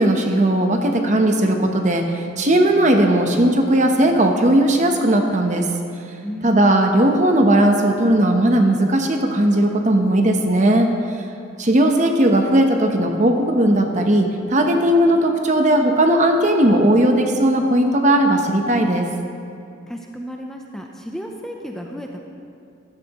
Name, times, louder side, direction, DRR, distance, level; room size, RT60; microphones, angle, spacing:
voice 1, 0.0-5.7 6.4-10.9 11.6-19.1, right 1 dB, 40° right, 4 dB, 0.9 m, -17 dB
voice 2, 6.2-6.6 19.9-22.3, equal, 5° left, 1 dB, 0.6 m, -33 dB
15.0 x 11.5 x 3.0 m, 2.4 s
head